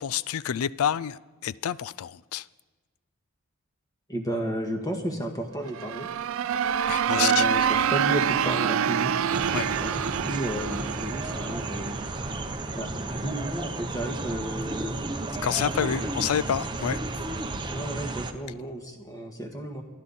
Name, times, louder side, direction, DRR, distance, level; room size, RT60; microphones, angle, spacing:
voice 1, 0.0-2.5 6.9-7.7 9.5-9.7 15.4-17.1, left 9 dB, 75° left, 0.4 m, -28 dB
voice 2, 4.1-6.1 7.1-9.1 9.8-12.0 12.7-15.0 15.8-16.1 17.7-19.8, right 1 dB, 15° left, 1.6 m, -33 dB
sound 1, 5.7-12.5, right 8 dB, 65° right, 0.4 m, -26 dB
ambiance suburb, 9.3-18.3, right 2 dB, 20° right, 0.8 m, -33 dB
28.5 x 11.5 x 4.2 m
head